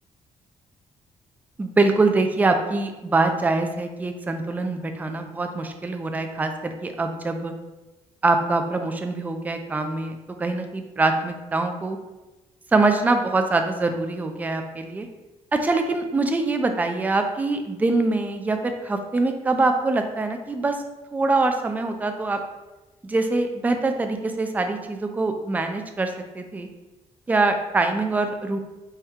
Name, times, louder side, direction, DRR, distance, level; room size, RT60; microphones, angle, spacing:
voice 1, 1.6-7.5 8.2-12.0 12.7-15.1 15.5-20.8 21.1-22.4 23.0-26.7 27.3-28.6, right 3 dB, 15° right, 5 dB, 0.3 m, -24 dB
4.2 x 2.2 x 3.6 m, 1.1 s
cardioid pair, 130°, 12 cm